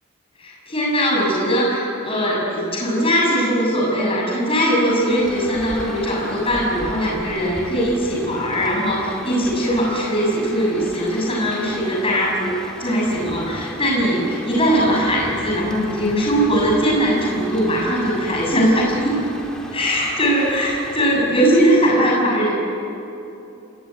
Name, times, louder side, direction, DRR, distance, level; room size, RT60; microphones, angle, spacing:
voice 1, 0.4-19.2 19.7-22.5, equal, 25° left, -3 dB, 6.8 m, -20 dB
Rain, 4.9-21.9, equal, 5° left, 3.2 m, -37 dB
27.0 x 20.5 x 9.6 m, 2.9 s
head